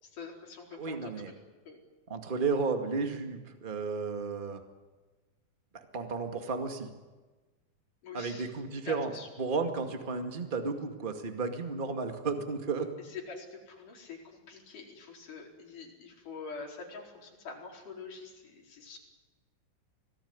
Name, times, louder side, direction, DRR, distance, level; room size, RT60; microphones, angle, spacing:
voice 1, 0.0-1.1 1.7-1.8 8.0-8.5 8.9-9.3 13.1-19.0, left 4 dB, 60° left, -1 dB, 5.9 m, -45 dB
voice 2, 0.7-1.3 2.1-4.6 5.7-6.9 8.1-9.1 9.4-12.9, right 4 dB, 20° right, 5 dB, 1.4 m, -33 dB
25.0 x 18.5 x 9.7 m, 1.2 s
omnidirectional pair, 4.2 m